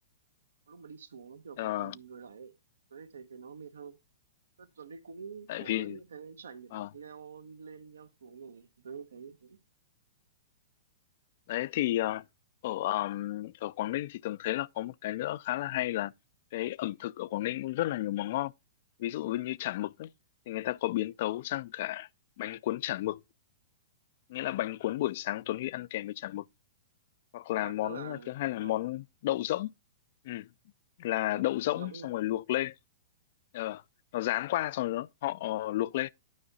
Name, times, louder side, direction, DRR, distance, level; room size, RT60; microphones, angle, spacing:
voice 1, 0.7-2.5 2.9-4.0 4.6-9.6 27.5-28.7 31.3-31.5 31.7-32.1, right 6 dB, 90° right, 1.0 m, -47 dB
voice 2, 1.6-2.0 5.5-6.0 6.7-6.9 11.5-12.2 12.6-16.1 16.5-18.5 19.0-20.1 20.5-22.1 22.4-23.2 24.3-26.5 27.3-29.7 30.2-30.5 31.0-32.7 33.5-33.8 34.1-36.1, left 15 dB, 55° left, 0.3 m, -32 dB
9.6 x 5.5 x 3.9 m
hypercardioid pair, 130°, 0 cm